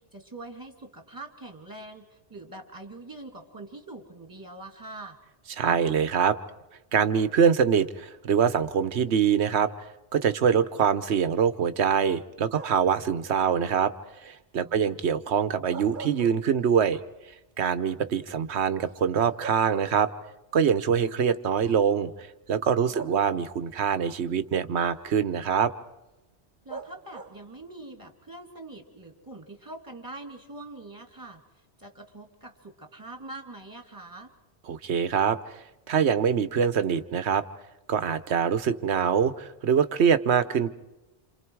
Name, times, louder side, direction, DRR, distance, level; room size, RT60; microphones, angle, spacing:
voice 1, 0.0-5.2 14.6-15.1 22.8-23.2 26.6-31.4 31.8-34.3, right 2 dB, 20° right, 4 dB, 2.6 m, -44 dB
voice 2, 5.6-6.4 6.9-9.7 10.1-13.9 14.2-17.0 17.6-20.1 20.5-22.1 22.5-25.7 34.7-35.4 35.9-37.4 37.9-40.7, right 7 dB, 75° right, 13 dB, 1.2 m, -24 dB
sound 1, 12.5-13.0 15.5-16.9 17.3-17.4 18.9-19.0 19.4-20.5 21.6-21.7 22.9-23.7 26.7-27.6, right 5 dB, 50° right, 1.1 m, -42 dB
28.0 x 27.5 x 4.7 m, 1.0 s
omnidirectional pair, 1.1 m